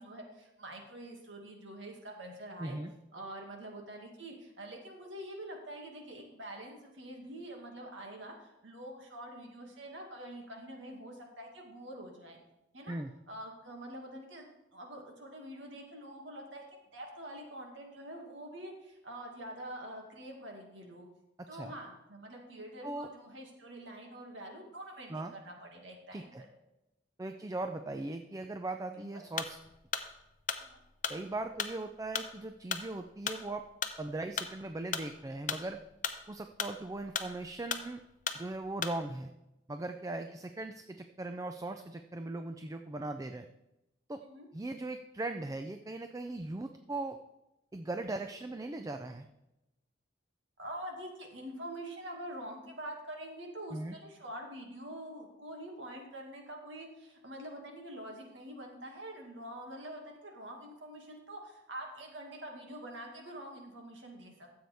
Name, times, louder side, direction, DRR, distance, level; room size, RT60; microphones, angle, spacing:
voice 1, 0.0-2.8 3.1-12.4 12.7-13.0 13.3-16.6 16.9-21.1 21.5-26.5 28.9-29.2 30.6-30.8 40.2-40.3 44.2-44.5 50.6-64.5, right 1 dB, 80° right, 1 dB, 2.1 m, -46 dB
voice 2, 2.6-2.9 12.9-13.1 21.5-21.7 22.8-23.1 25.1-25.3 26.1-26.4 27.2-29.6 31.1-33.6 34.0-35.8 36.3-38.0 38.3-39.3 39.7-43.5 44.1-44.2 44.5-47.2 47.7-49.3 53.7-54.0, right 2 dB, 20° right, 7 dB, 0.4 m, -39 dB
sound 1, 29.4-39.1, left 7 dB, 45° left, 0.7 m, -37 dB
13.5 x 7.8 x 3.5 m, 0.93 s
head